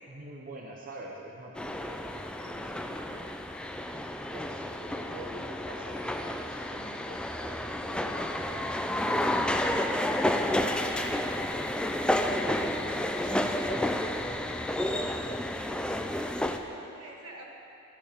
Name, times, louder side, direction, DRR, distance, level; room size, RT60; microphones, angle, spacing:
voice 1, 0.1-3.3 3.9-4.1 4.3-9.7 10.9-15.1, right 1 dB, 40° right, -1 dB, 0.7 m, -47 dB
sound 1, 1.6-16.6, left 1 dB, 5° left, 0.3 m, -31 dB
voice 2, 15.9-17.5, right 2 dB, 80° right, -1 dB, 1.4 m, -50 dB
12.5 x 8.4 x 3.5 m, 2.9 s
head